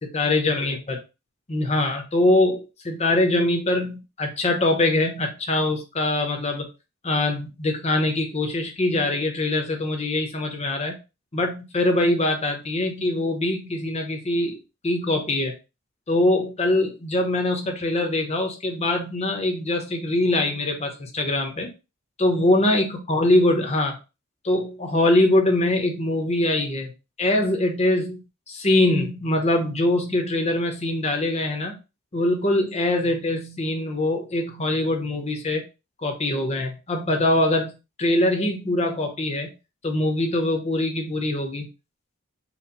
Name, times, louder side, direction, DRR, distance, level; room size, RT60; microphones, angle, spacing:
voice 1, 0.1-1.0 1.5-6.7 7.0-10.9 11.3-14.6 14.8-15.5 16.1-21.7 22.2-24.0 24.4-26.9 27.2-28.2 28.5-31.7 32.1-35.6 36.0-39.5 39.8-41.7, left 1 dB, 30° left, 3 dB, 0.9 m, -23 dB
4.4 x 2.2 x 3.9 m, 0.29 s
head